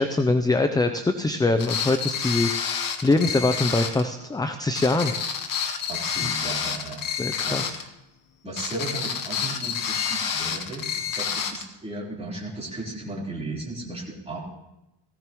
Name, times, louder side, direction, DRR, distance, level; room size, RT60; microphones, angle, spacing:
voice 1, 0.0-2.5 3.0-5.1 6.2-6.4 7.2-7.8, left 2 dB, 10° left, 8 dB, 0.4 m, -23 dB
sound 1, 1.6-4.1 4.8-7.9 8.6-11.6, left 7 dB, 45° left, 1.1 m, -29 dB
voice 2, 5.9-7.0 7.4-7.9 8.4-14.4, right 2 dB, 15° right, -5 dB, 3.7 m, -35 dB
18.5 x 15.0 x 3.0 m, 0.92 s
cardioid pair, 135°, 44 cm